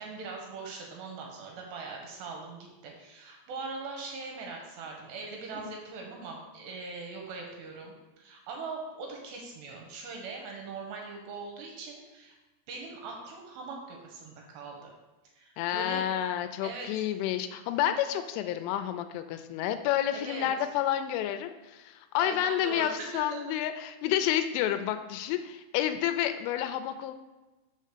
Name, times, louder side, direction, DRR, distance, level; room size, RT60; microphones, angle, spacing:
voice 1, 0.0-12.3 12.7-14.9 15.4-16.1 16.6-16.9 20.1-20.5 22.2-23.4, right 4 dB, 75° right, 0 dB, 2.8 m, -41 dB
voice 2, 15.6-27.1, left 11 dB, 85° left, 9 dB, 2.8 m, -30 dB
6.5 x 5.1 x 6.6 m, 1.1 s
omnidirectional pair, 6.0 m